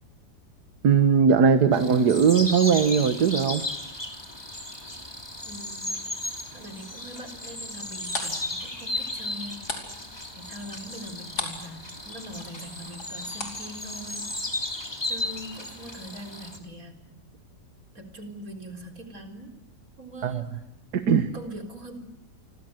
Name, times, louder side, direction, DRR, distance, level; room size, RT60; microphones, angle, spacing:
voice 1, 0.8-3.7 20.2-20.4 20.9-21.3, right 6 dB, 70° right, 9 dB, 1.8 m, -20 dB
sound 1, 1.7-16.6, left 1 dB, 15° left, 3.0 m, -35 dB
voice 2, 5.4-6.0 6.5-9.7 10.3-14.3 15.0-17.0 17.9-19.6 20.0-20.6 21.1-22.0, right 1 dB, 55° right, 5 dB, 4.3 m, -42 dB
sound 2, 7.7-11.7 12.0-14.4, left 2 dB, 65° left, 5.3 m, -37 dB
30.0 x 25.0 x 7.8 m, 0.89 s
omnidirectional pair, 1.8 m